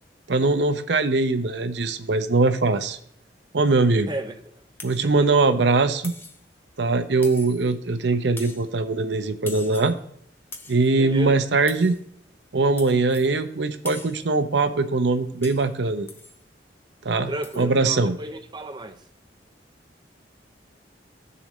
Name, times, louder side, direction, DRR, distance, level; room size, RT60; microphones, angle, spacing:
voice 1, 0.3-3.0 3.5-4.1 4.8-6.1 6.8-10.0 10.7-12.0 12.5-16.1 17.0-17.3 17.6-18.1, right 3 dB, 80° right, 0.7 m, -21 dB
voice 2, 4.0-4.6 5.0-5.1 11.0-11.4 17.3-19.0, right 1 dB, 25° right, 0.6 m, -33 dB
sound 1, 4.8-5.1 6.0-6.5 7.2-7.7 8.4-8.7 9.5-10.0 10.5-10.9 11.7-12.0 12.8-13.3 13.8-14.2 15.4-15.7 16.1-16.4 17.4-17.6, left 3 dB, 10° left, 0.7 m, -42 dB
16.0 x 6.9 x 3.1 m
head